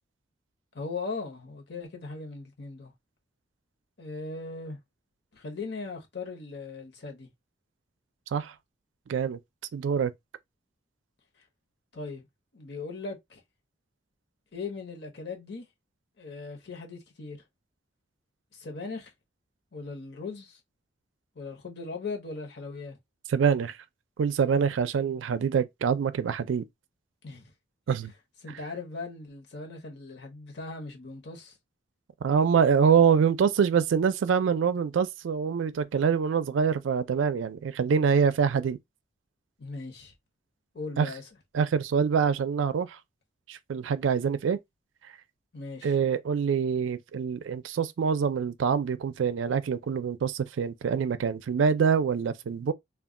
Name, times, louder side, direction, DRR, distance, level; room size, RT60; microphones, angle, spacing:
voice 1, 0.7-2.9 4.0-4.8 5.3-7.3 11.9-12.3 12.5-13.4 14.5-15.6 16.2-17.4 18.5-19.1 19.7-20.6 21.3-23.0 27.2-27.5 28.4-31.6 39.6-40.1 40.7-41.2 45.5-46.0, left 4 dB, 60° left, 0.8 m, -38 dB
voice 2, 9.1-9.4 9.7-10.1 23.3-23.8 24.2-26.6 27.9-28.1 32.2-38.8 41.0-41.1 41.5-43.0 43.5-44.6 45.8-52.7, right 6 dB, 85° right, 0.4 m, -25 dB
2.3 x 2.2 x 3.6 m
head